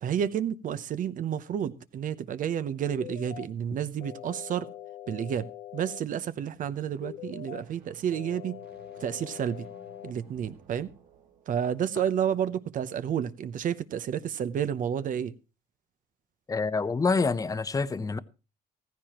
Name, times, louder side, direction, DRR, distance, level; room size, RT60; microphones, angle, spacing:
voice 1, 0.0-4.7 5.1-5.5 5.7-8.6 9.0-9.7 10.0-10.9 11.5-15.3, right 9 dB, 50° right, 0.8 m, -30 dB
sound 1, 2.9-3.5 4.0-6.0 7.0-7.6 8.1-10.1, left 12 dB, 85° left, 0.8 m, -43 dB
sound 2, 6.4-12.0, right 6 dB, 70° right, 3.1 m, -56 dB
voice 2, 16.5-18.2, left 4 dB, 20° left, 0.7 m, -27 dB
15.5 x 15.0 x 2.9 m
cardioid pair, 110°, 17 cm